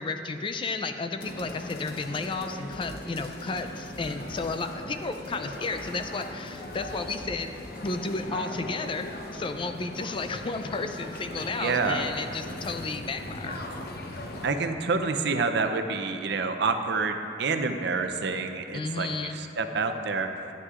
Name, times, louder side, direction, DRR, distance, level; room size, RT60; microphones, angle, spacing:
voice 1, 0.0-7.5 7.8-13.6 18.7-19.4, left 3 dB, 30° left, 8 dB, 0.4 m, -33 dB
sound 1, 1.2-14.5, left 2 dB, 55° left, 0.8 m, -39 dB
sound 2, 2.7-7.8, equal, 30° right, 1.2 m, -49 dB
voice 2, 8.3-8.7 11.6-12.0 14.4-20.5, right 4 dB, 65° right, 7 dB, 0.6 m, -28 dB
12.5 x 9.5 x 2.5 m, 2.7 s
head